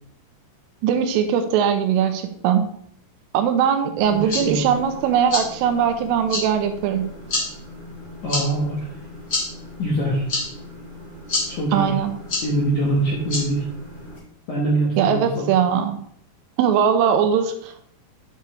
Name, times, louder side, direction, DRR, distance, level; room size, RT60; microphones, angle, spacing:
voice 1, 0.8-2.6 3.3-7.1 11.7-12.1 15.0-16.0 16.6-17.8, right 8 dB, 80° right, 7 dB, 3.2 m, -20 dB
sound 1, 4.0-14.2, left 2 dB, 25° left, 3.0 m, -31 dB
voice 2, 4.2-4.6 8.2-8.8 9.8-10.2 11.5-11.9 12.4-13.6 14.5-15.4, right 1 dB, 70° left, -5 dB, 1.9 m, -23 dB
10.0 x 6.5 x 3.4 m, 0.67 s
omnidirectional pair, 6.0 m